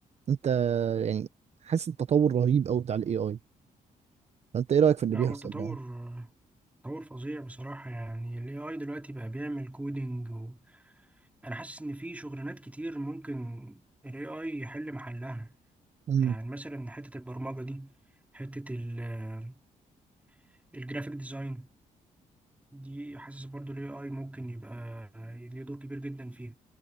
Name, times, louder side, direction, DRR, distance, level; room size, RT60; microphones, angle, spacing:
voice 1, 0.3-1.3 1.6-3.4 4.5-5.7 16.1-16.4, right 8 dB, 50° right, 0.9 m, -26 dB
voice 2, 5.1-6.3 6.8-10.9 11.4-15.6 16.2-17.9 18.3-19.6 20.7-21.7 22.7-26.6, right 1 dB, 10° right, 3.0 m, -38 dB
cardioid pair, 100°, 14 cm